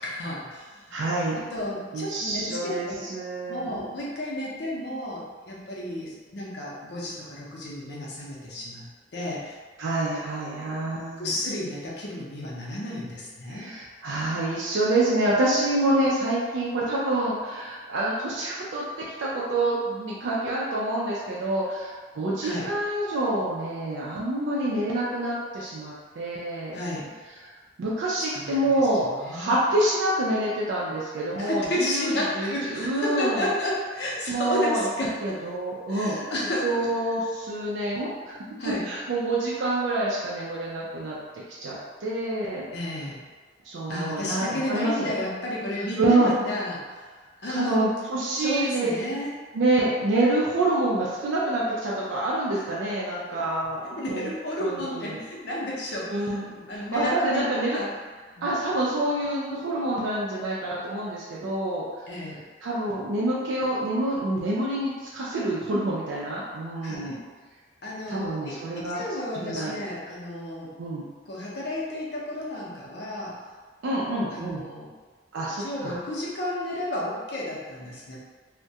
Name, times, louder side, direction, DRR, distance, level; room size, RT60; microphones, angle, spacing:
voice 1, 0.0-1.0 1.3-3.0 3.5-8.9 9.1-9.6 10.1-10.8 11.2-13.7 22.4-22.7 26.7-27.1 28.2-28.7 29.2-29.7 31.4-35.4 35.9-36.7 38.6-38.8 42.7-43.2 43.9-47.0 47.4-47.9 48.4-49.4 54.0-57.9 58.4-58.5 62.1-62.4 66.8-67.2 67.8-70.7 71.3-73.3 74.3-74.9 75.6-78.2, left 1 dB, 60° left, -5 dB, 0.6 m, -32 dB
voice 2, 0.9-1.4 1.9-3.8 9.8-11.4 13.5-26.7 27.8-33.5 34.3-34.9 35.2-36.2 36.6-38.3 38.8-41.2 41.6-42.7 43.6-45.1 46.0-46.3 47.5-48.9 49.5-54.3 54.6-55.2 56.1-56.5 56.7-57.8 58.4-61.8 62.6-67.2 68.1-69.0 69.3-69.8 70.8-71.0 73.8-74.6 75.3-76.0, right 1 dB, 85° right, -6 dB, 0.4 m, -27 dB
2.3 x 2.1 x 2.7 m, 1.5 s
head